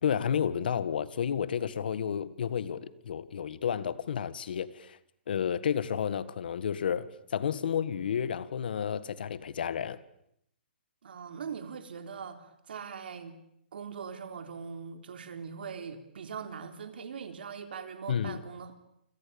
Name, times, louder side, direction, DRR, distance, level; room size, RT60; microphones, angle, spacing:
voice 1, 0.0-5.0 5.3-10.0 18.1-18.4, left 8 dB, 60° left, 1.7 m, -31 dB
voice 2, 11.0-13.4 13.7-18.8, right 6 dB, 65° right, 4.0 m, -41 dB
29.0 x 27.0 x 7.1 m
hypercardioid pair, 170°, 6 cm